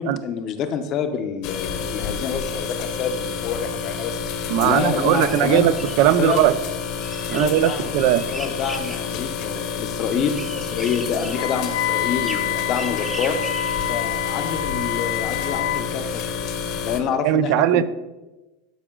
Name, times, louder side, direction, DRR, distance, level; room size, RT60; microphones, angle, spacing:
voice 1, 0.0-5.7 6.2-6.4 7.2-8.0 8.3-13.4 13.9-16.5 16.8-17.8, left 7 dB, 40° left, 8 dB, 0.7 m, -27 dB
sound 1, 1.4-17.0, left 6 dB, 55° left, 1.1 m, -29 dB
voice 2, 4.5-6.5 7.3-8.2 17.2-17.8, right 12 dB, 55° right, 14 dB, 0.4 m, -19 dB
sound 2, 4.6-14.0, right 1 dB, 10° right, 0.7 m, -39 dB
Wind instrument woodwind instrument, 11.3-15.9, left 11 dB, 90° left, 0.6 m, -27 dB
12.0 x 4.9 x 3.8 m, 1.1 s
supercardioid pair, 145°, 0 cm